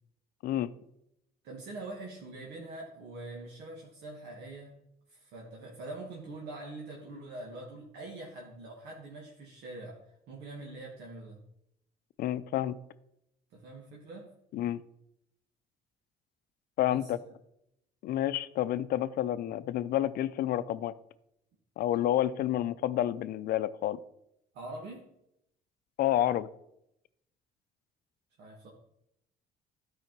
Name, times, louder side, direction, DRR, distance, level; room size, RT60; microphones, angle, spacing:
voice 1, 1.4-4.7 5.1-10.0 10.3-11.4 13.5-14.3 16.8-17.1 24.5-25.0 28.4-28.7, right 2 dB, 80° right, -2 dB, 1.8 m, -44 dB
voice 2, 12.2-12.8 14.5-14.8 16.8-17.2 18.0-20.9 21.8-24.0 26.0-26.5, left 12 dB, 65° left, 15 dB, 0.5 m, -29 dB
11.5 x 4.9 x 4.5 m, 0.81 s
cardioid pair, 110°, 17 cm